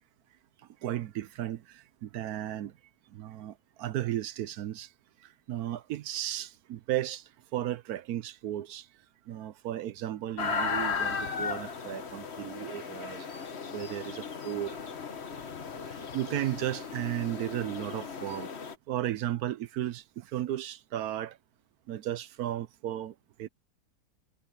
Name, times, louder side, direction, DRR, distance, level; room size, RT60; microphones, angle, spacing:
voice 1, 0.8-2.7 3.1-4.9 5.2-8.9 9.3-13.3 13.7-14.8 15.9-18.5 18.9-21.4 21.9-23.5, right 12 dB, 70° right, 1.0 m, -35 dB
sound 1, 10.4-18.7, left 5 dB, 40° left, 1.4 m, -36 dB
omnidirectional pair, 1.9 m